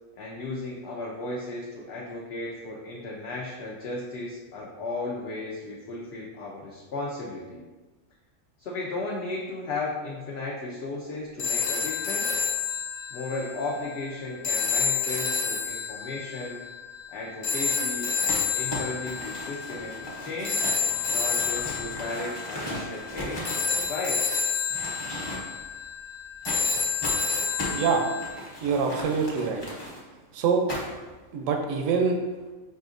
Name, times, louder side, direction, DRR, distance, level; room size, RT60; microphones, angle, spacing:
voice 1, 0.2-7.6 8.6-12.4 13.1-16.6 17.1-19.9 20.2-20.6 21.1-23.5 23.9-24.2, left 2 dB, 60° left, -4 dB, 0.8 m, -35 dB
sound 1, 11.4-28.3, left 5 dB, 85° left, 1.1 m, -29 dB
Crumpling crinkling, 18.3-24.3 24.7-25.7 26.5-30.0 30.7-31.1, equal, 20° left, 0.8 m, -37 dB
voice 2, 27.7-28.1 28.6-29.6 30.3-30.6 31.3-32.2, right 5 dB, 75° right, 3 dB, 0.9 m, -25 dB
5.5 x 2.5 x 2.5 m, 1.2 s
omnidirectional pair, 1.4 m